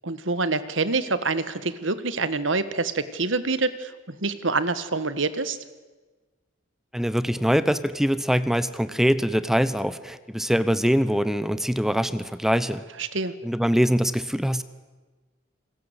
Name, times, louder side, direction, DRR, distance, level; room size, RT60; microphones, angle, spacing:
voice 1, 0.0-5.6 13.0-13.3, right 3 dB, 70° right, 13 dB, 1.6 m, -26 dB
voice 2, 6.9-12.8 13.4-14.6, equal, ahead, 14 dB, 0.8 m, -23 dB
28.5 x 21.0 x 8.1 m, 1.3 s
head